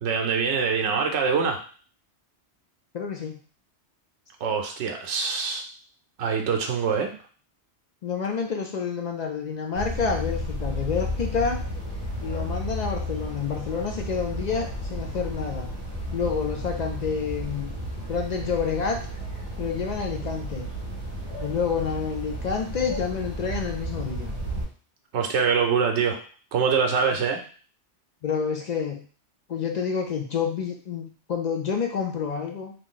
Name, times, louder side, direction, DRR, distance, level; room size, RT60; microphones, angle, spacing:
voice 1, 0.0-1.6 4.4-5.6 6.2-7.1 25.1-26.2 26.5-27.4, right 5 dB, 75° right, 2 dB, 0.9 m, -24 dB
voice 2, 2.9-3.3 8.0-11.6 12.2-15.7 16.1-17.8 18.1-19.0 19.6-20.7 21.4-24.3 28.2-29.0 29.5-32.7, left 6 dB, 60° left, 3 dB, 0.4 m, -28 dB
sound 1, 9.7-24.7, equal, 25° right, 1.1 m, -33 dB
2.9 x 2.5 x 3.7 m, 0.41 s
omnidirectional pair, 1.2 m